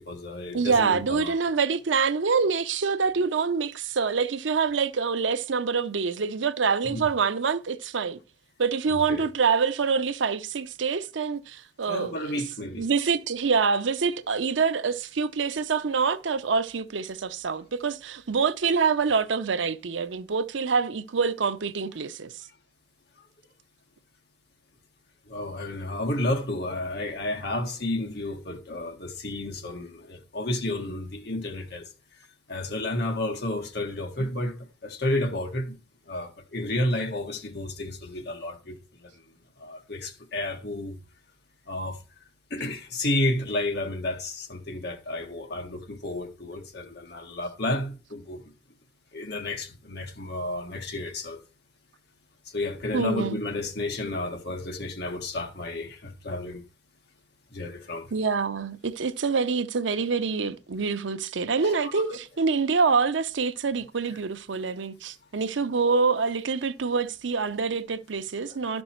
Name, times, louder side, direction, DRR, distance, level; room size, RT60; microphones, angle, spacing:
voice 1, 0.0-1.4 6.8-7.0 8.9-9.2 11.9-12.9 25.3-31.9 32.5-35.8 36.1-39.1 39.6-41.0 41.7-42.0 42.5-48.4 49.1-51.4 52.4-56.6 57.5-58.1 61.6-62.2 64.1-64.2 68.5-68.8, left 1 dB, 60° left, 1.6 m, -31 dB
voice 2, 0.5-8.2 8.6-12.3 12.8-22.3 52.9-53.4 58.1-68.8, right 5 dB, 85° right, 0.6 m, -26 dB
12.0 x 5.3 x 4.5 m
head